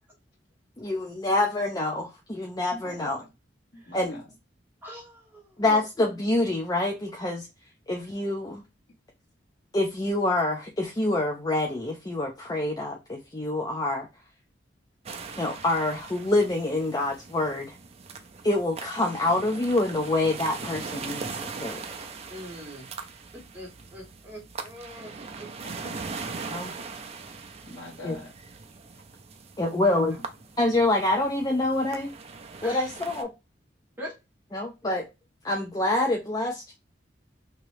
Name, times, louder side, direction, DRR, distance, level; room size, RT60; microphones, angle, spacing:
voice 1, 0.8-3.2 3.9-4.2 5.6-7.5 7.9-8.6 9.7-14.1 15.4-17.8 18.4-21.9 26.5-26.7 28.0-28.2 29.6-30.2 30.6-32.1 32.6-33.3 34.5-35.0 35.4-36.7, left 2 dB, 20° left, 0.5 m, -26 dB
voice 2, 2.7-3.3 3.7-4.3 25.6-26.3 27.7-28.3, left 1 dB, 65° left, 1.9 m, -43 dB
voice 3, 4.8-5.8 22.3-22.9 23.3-25.5 29.6-30.0 32.6-32.9 34.0-34.1 34.5-34.6, equal, 10° right, 1.2 m, -42 dB
sound 1, 15.1-33.2, right 4 dB, 35° right, 0.5 m, -40 dB
3.0 x 2.8 x 3.1 m
head